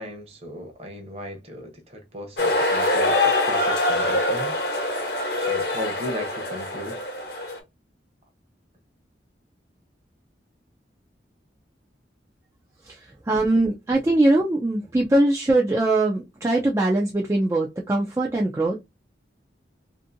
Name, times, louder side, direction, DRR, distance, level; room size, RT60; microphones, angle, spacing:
voice 1, 0.0-4.6 5.4-7.0, left 1 dB, 35° right, 0.8 m, -36 dB
sound 1, 2.4-7.6, left 1 dB, 60° left, 0.9 m, -24 dB
voice 2, 12.8-18.8, right 2 dB, 15° right, 0.3 m, -22 dB
2.6 x 2.6 x 2.5 m
head